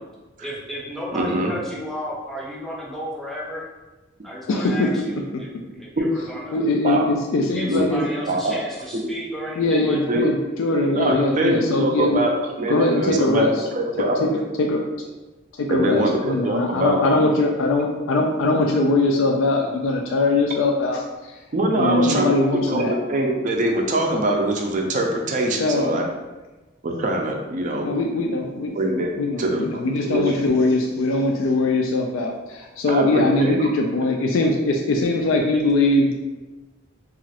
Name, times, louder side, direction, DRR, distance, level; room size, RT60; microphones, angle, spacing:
voice 1, 0.4-3.6 4.2-6.6 7.5-10.3 35.5-35.6, equal, ahead, -5 dB, 0.6 m, -33 dB
voice 2, 1.1-1.5 6.8-7.1 7.7-7.9 8.3-8.5 10.1-10.2 10.9-12.3 12.6-13.5 13.7-14.3 15.7-17.2 21.5-26.0 26.8-27.9 28.7-29.1 29.4-29.6 30.0-30.3 32.9-33.7, right 1 dB, 40° right, 1 dB, 0.4 m, -23 dB
voice 3, 4.5-4.9 6.5-8.0 9.6-12.2 12.7-13.5 14.2-14.3 14.6-14.8 15.6-21.4 21.8-22.9 25.6-26.0 27.8-28.7 29.2-36.1, left 2 dB, 80° left, 1 dB, 0.3 m, -21 dB
2.9 x 2.4 x 2.8 m, 1.1 s
head